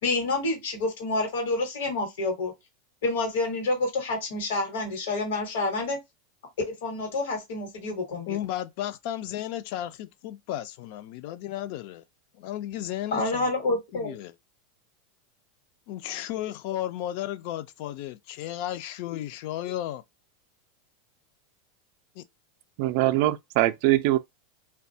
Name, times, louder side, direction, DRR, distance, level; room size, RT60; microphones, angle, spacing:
voice 1, 0.0-2.5 3.0-6.0 6.7-8.4 13.1-14.2, left 2 dB, 80° left, 1.1 m, -28 dB
voice 2, 8.3-12.0 12.4-14.3 15.9-20.0 22.2-22.3, left 12 dB, 55° left, 0.3 m, -34 dB
voice 3, 22.8-24.2, right 16 dB, 55° right, 0.3 m, -22 dB
2.6 x 2.2 x 2.6 m
supercardioid pair, 150°, 0 cm